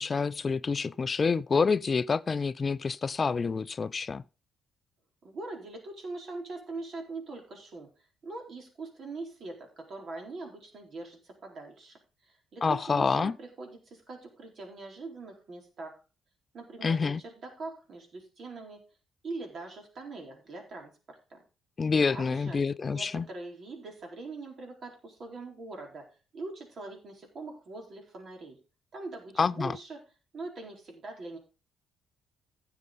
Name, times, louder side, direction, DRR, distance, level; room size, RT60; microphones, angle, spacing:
voice 1, 0.0-4.2 12.6-13.4 16.8-17.2 21.8-23.3 29.4-29.8, left 5 dB, 40° left, 0.4 m, -27 dB
voice 2, 5.2-7.9 8.2-16.0 16.5-18.8 19.2-21.4 22.1-22.6 22.9-26.0 26.3-28.6 28.9-30.0 30.3-31.4, right 3 dB, 50° right, 4.3 m, -42 dB
15.5 x 6.9 x 4.0 m
hypercardioid pair, 45°, 0 cm